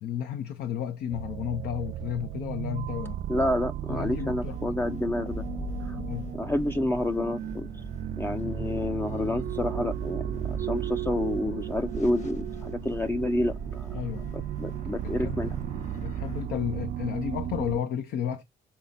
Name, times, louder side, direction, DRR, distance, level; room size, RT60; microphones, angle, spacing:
voice 1, 0.0-3.2 3.9-4.6 6.0-6.3 13.9-14.4 15.0-15.5 15.9-18.4, left 9 dB, 70° left, 0.9 m, -32 dB
sound 1, 1.1-17.8, right 11 dB, 55° right, 0.4 m, -35 dB
voice 2, 3.3-5.4 5.8-6.0 6.3-7.7 8.2-14.0 14.3-15.6, left 1 dB, 15° left, 0.5 m, -29 dB
sound 2, 4.0-16.5, left 3 dB, 45° left, 1.7 m, -42 dB
6.9 x 4.1 x 5.7 m
cardioid pair, 110°, 17 cm